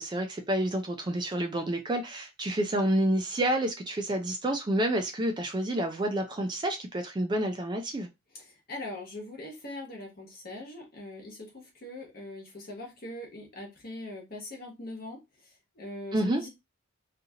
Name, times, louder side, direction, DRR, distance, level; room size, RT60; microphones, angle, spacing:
voice 1, 0.0-8.1 16.1-16.4, right 1 dB, 25° right, 0.3 m, -29 dB
voice 2, 8.3-16.5, left 1 dB, 50° left, 1.1 m, -42 dB
2.7 x 2.4 x 2.7 m
head